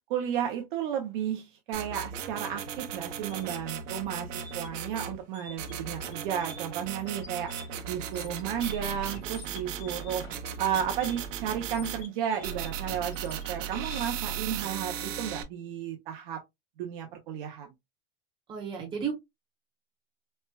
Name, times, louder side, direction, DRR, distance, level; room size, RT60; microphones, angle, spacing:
voice 1, 0.1-7.5 7.9-10.2 10.6-16.4 16.8-17.7, right 9 dB, 45° right, 0.6 m, -33 dB
sound 1, 1.7-5.2 5.6-12.0 12.4-15.4, right 8 dB, 85° right, 0.8 m, -37 dB
sound 2, 3.2-14.3, left 4 dB, 75° left, 2.3 m, -49 dB
voice 2, 18.5-19.1, right 7 dB, 15° right, 0.9 m, -33 dB
4.3 x 2.1 x 2.2 m
supercardioid pair, 180°, 37 cm